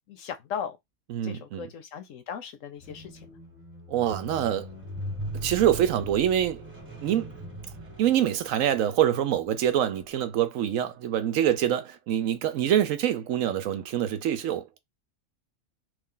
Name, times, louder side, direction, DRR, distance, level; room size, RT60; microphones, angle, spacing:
voice 1, 0.1-0.8 1.2-3.3, left 7 dB, 65° left, 1.0 m, -37 dB
voice 2, 1.1-1.7 3.9-4.7 5.4-6.7 7.0-7.3 8.0-14.8, right 10 dB, 70° right, 0.9 m, -25 dB
Squeak, 2.8-9.1 9.9-10.0, right 1 dB, 10° right, 1.2 m, -40 dB
3.3 x 2.4 x 3.7 m
omnidirectional pair, 1.5 m